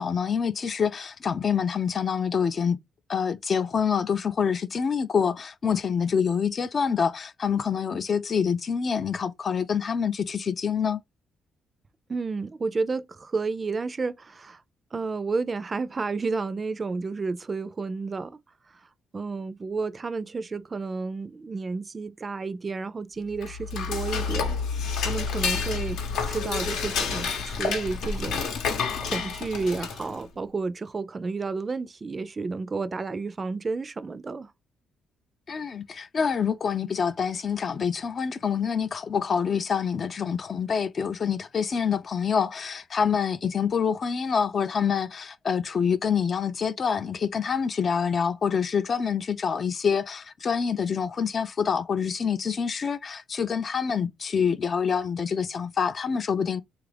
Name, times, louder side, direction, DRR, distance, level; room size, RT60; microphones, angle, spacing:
voice 1, 0.0-2.8 3.1-11.0 35.5-56.6, left 6 dB, 45° left, 0.3 m, -26 dB
voice 2, 12.1-14.6 14.9-18.4 19.1-24.6 25.0-28.5 28.7-34.5, right 4 dB, 30° right, 0.4 m, -31 dB
Dishes pots and pans / Cutlery silverware, 23.3-30.2, left 5 dB, 85° left, 0.8 m, -29 dB
3.2 x 2.4 x 3.2 m
cardioid pair, 90°, 0 cm